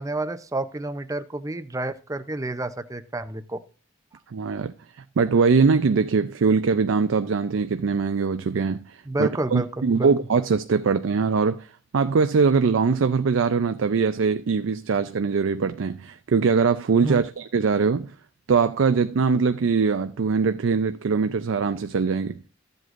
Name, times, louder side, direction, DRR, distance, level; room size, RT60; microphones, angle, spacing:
voice 1, 0.0-3.6 9.1-10.1 17.0-17.3, right 2 dB, 15° right, 0.6 m, -29 dB
voice 2, 4.3-4.7 5.2-11.7 11.9-18.1 18.5-22.4, right 5 dB, 70° right, 0.4 m, -22 dB
13.5 x 7.8 x 2.5 m
head